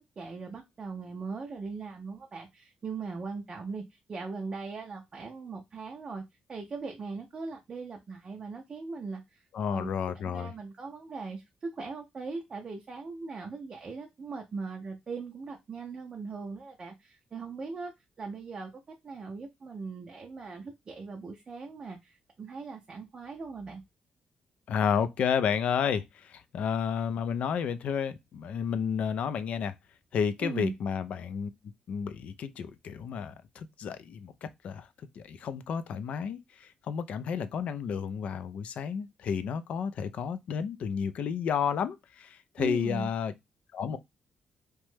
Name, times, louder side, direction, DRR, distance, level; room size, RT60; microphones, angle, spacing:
voice 1, 0.2-6.2 6.5-9.9 10.2-17.9 18.2-18.7 19.0-23.8 30.4-30.7 42.6-43.1, right 4 dB, 30° right, 0.4 m, -39 dB
voice 2, 9.5-10.5 24.7-29.7 30.1-31.5 31.9-34.3 34.6-34.9 35.2-36.4 36.9-43.3 43.7-44.0, left 7 dB, 60° left, 0.3 m, -31 dB
2.9 x 2.2 x 3.1 m
cardioid pair, 165°, 3 cm